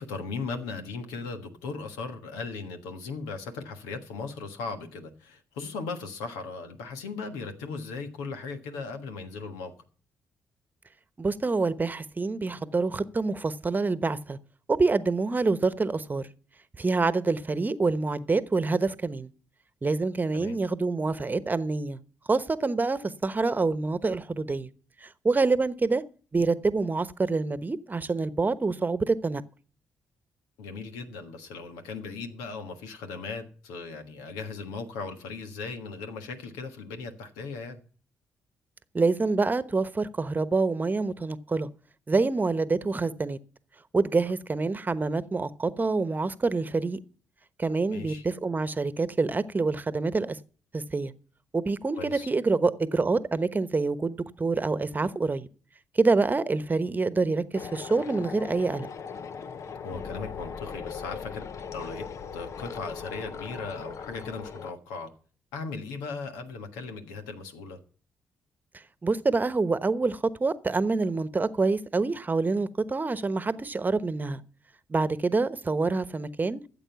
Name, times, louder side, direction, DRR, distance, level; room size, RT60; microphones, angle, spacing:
voice 1, 0.0-9.7 20.3-20.6 30.6-37.8 47.9-48.2 51.9-52.3 59.8-62.1 62.3-65.1 65.5-67.8, left 4 dB, 85° left, 1.5 m, -37 dB
voice 2, 11.2-14.4 14.7-16.3 16.8-19.3 19.8-22.0 22.3-24.7 25.0-26.0 26.3-29.4 38.9-41.7 42.1-43.4 43.9-47.0 47.6-50.4 50.7-51.1 51.5-55.5 56.0-58.9 69.0-74.4 74.9-76.6, right 3 dB, 30° right, 1.0 m, -26 dB
sound 1, 57.5-64.7, left 6 dB, 60° left, 0.8 m, -39 dB
14.0 x 7.8 x 5.8 m
hypercardioid pair, 45°, 6 cm